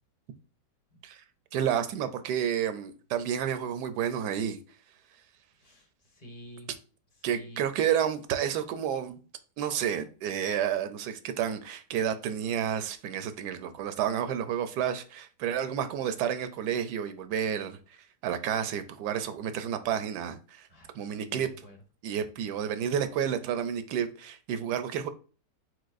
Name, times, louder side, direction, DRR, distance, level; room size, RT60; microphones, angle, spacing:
voice 1, 1.5-4.6 7.2-9.2 9.6-17.8 18.2-20.7 20.9-21.5 22.0-25.1, right 9 dB, 80° right, 1.1 m, -30 dB
voice 2, 5.6-6.7 7.3-7.6 20.7-21.8, equal, 30° left, 0.9 m, -49 dB
4.8 x 4.0 x 2.5 m
omnidirectional pair, 1.8 m